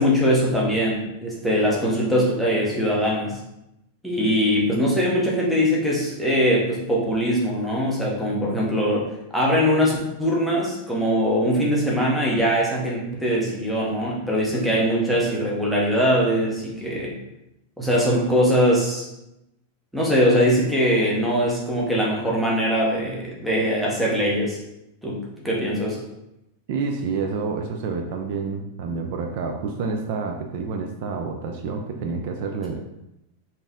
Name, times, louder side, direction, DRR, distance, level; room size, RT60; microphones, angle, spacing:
voice 1, 0.0-3.4 4.0-17.1 17.8-19.1 19.9-24.6 25.0-26.0, equal, ahead, -5 dB, 0.7 m, -22 dB
voice 2, 26.7-32.8, right 4 dB, 45° right, 3 dB, 0.4 m, -28 dB
4.0 x 2.6 x 3.5 m, 0.88 s
supercardioid pair, 175°, 0 cm